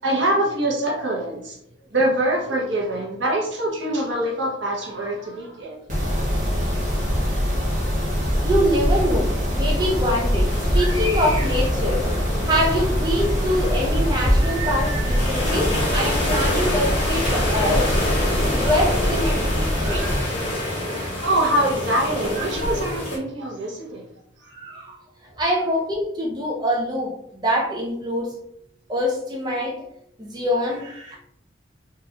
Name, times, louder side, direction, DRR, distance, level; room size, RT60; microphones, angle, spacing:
voice 1, 0.0-1.6 1.9-5.8 21.2-24.1 24.4-24.5, right 1 dB, 90° right, -1 dB, 1.0 m, -24 dB
Mechanisms, 5.9-20.2, equal, 40° right, 1.0 m, -23 dB
voice 2, 8.1-12.0 12.4-21.2 22.4-22.5 24.5-25.0 25.4-28.3 28.9-29.8 30.2-31.2, equal, 20° right, -2 dB, 0.6 m, -25 dB
sound 1, 10.5-23.2, left 1 dB, 30° left, 1.4 m, -28 dB
3.8 x 2.6 x 2.9 m, 0.70 s
head